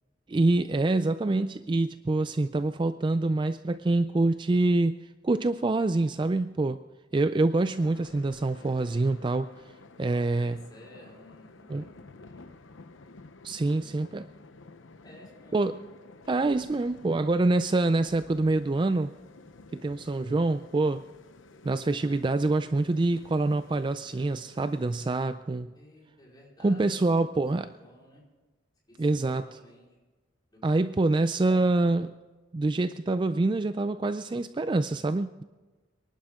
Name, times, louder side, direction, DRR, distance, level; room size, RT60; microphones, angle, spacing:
voice 1, 0.3-5.0 5.2-6.8 7.1-9.5 10.0-10.6 11.7-11.8 13.4-14.3 15.5-15.8 16.3-19.1 19.7-21.0 21.6-25.7 26.6-27.7 29.0-29.5 30.6-32.1 32.5-35.4, right 2 dB, 25° right, 12 dB, 0.3 m, -26 dB
sound 1, 7.8-25.2, left 3 dB, 85° left, 0.8 m, -52 dB
voice 2, 9.8-12.5 15.0-15.6 25.7-28.2 28.9-29.9 30.5-31.1, left 1 dB, 20° left, -3 dB, 4.4 m, -54 dB
24.5 x 11.5 x 3.7 m, 1.2 s
head